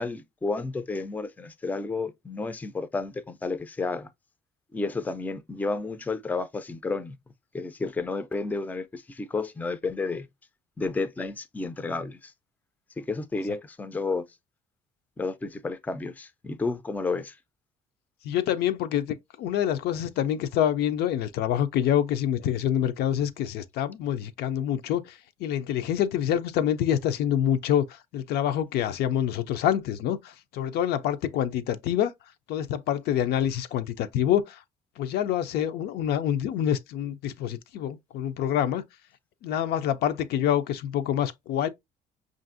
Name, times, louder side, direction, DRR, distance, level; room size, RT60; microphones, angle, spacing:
voice 1, 0.0-4.1 4.7-7.1 7.5-10.3 10.8-12.3 13.0-14.3 15.2-17.4, left 3 dB, 10° left, 0.3 m, -31 dB
voice 2, 18.2-32.1 32.5-34.6 35.0-38.8 39.4-41.7, left 10 dB, 75° left, 0.4 m, -26 dB
5.3 x 2.5 x 2.5 m
cardioid pair, 110°, 17 cm